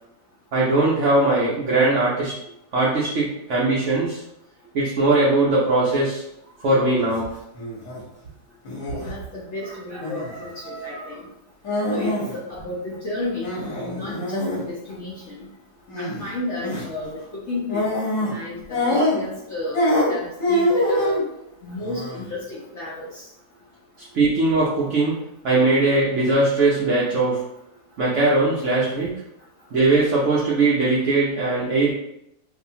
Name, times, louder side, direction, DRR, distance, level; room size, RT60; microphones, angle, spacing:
voice 1, 0.5-2.3 2.7-4.2 4.7-6.2 6.6-7.3 9.9-10.0 10.3-11.2 24.1-25.2 25.4-27.4 28.0-29.1 29.7-31.9, right 2 dB, 70° right, -6 dB, 0.7 m, -20 dB
sound 1, 6.9-7.2 7.5-8.0 8.6-9.1 10.0-10.4 11.6-12.4 12.6-12.7 13.4-14.6 15.9-16.3 16.6-16.9 17.7-18.4 18.7-19.4 19.7-21.2 21.8-22.3, left 1 dB, 50° left, 1.1 m, -24 dB
voice 2, 9.0-11.2 11.9-15.5 16.0-17.9 18.2-19.8 20.1-21.2 21.6-23.2, left 2 dB, 65° left, -7 dB, 0.7 m, -32 dB
2.6 x 2.5 x 2.7 m, 0.79 s
omnidirectional pair, 1.8 m